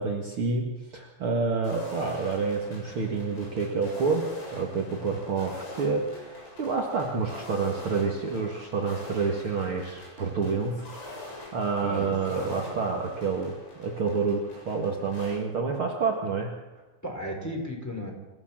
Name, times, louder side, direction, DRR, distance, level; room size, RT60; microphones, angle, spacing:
voice 1, 0.0-11.0 11.5-16.6, right 4 dB, 60° right, 0 dB, 1.4 m, -28 dB
sound 1, 1.6-15.4, left 2 dB, 70° left, 9.8 m, -44 dB
voice 2, 11.8-12.6 17.0-18.1, equal, 5° left, 0 dB, 4.3 m, -34 dB
27.5 x 16.0 x 7.5 m, 1.1 s
omnidirectional pair, 5.4 m